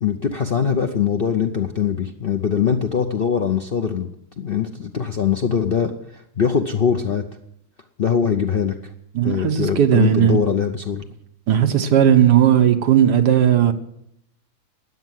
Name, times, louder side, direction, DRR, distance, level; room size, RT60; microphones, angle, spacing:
voice 1, 0.0-4.1 4.4-7.2 8.0-8.7 9.2-11.0, left 7 dB, 50° left, 0.7 m, -22 dB
voice 2, 9.1-10.4 11.5-13.7, right 10 dB, 75° right, 1.7 m, -16 dB
13.5 x 9.5 x 7.6 m
omnidirectional pair, 1.8 m